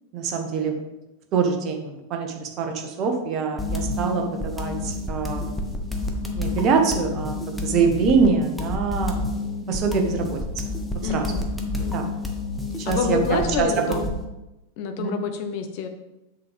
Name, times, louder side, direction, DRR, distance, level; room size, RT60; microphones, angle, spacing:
voice 1, 0.1-0.8 1.3-5.6 6.4-9.2 9.7-10.4 11.1-11.3 11.9-12.0 12.8-13.9 15.0-15.2, right 5 dB, 35° right, 3 dB, 1.3 m, -24 dB
sound 1, 3.6-14.2, left 2 dB, 5° left, 1.1 m, -29 dB
voice 2, 11.0-11.4 11.8-12.1 12.8-14.1 14.8-15.9, left 5 dB, 45° left, 6 dB, 1.0 m, -27 dB
7.3 x 6.2 x 3.5 m, 0.96 s
figure-of-eight pair, 90°, 0 cm